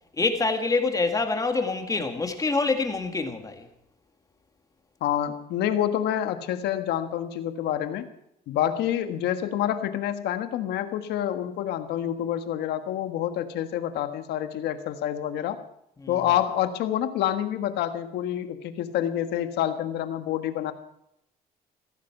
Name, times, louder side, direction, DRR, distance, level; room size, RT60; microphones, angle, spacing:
voice 1, 0.2-3.7 16.0-16.2, left 3 dB, 20° left, 2.0 m, -26 dB
voice 2, 5.0-8.1 8.5-15.6 16.1-20.7, left 11 dB, 80° left, 1.5 m, -27 dB
16.0 x 14.5 x 5.9 m
cardioid pair, 110°, 17 cm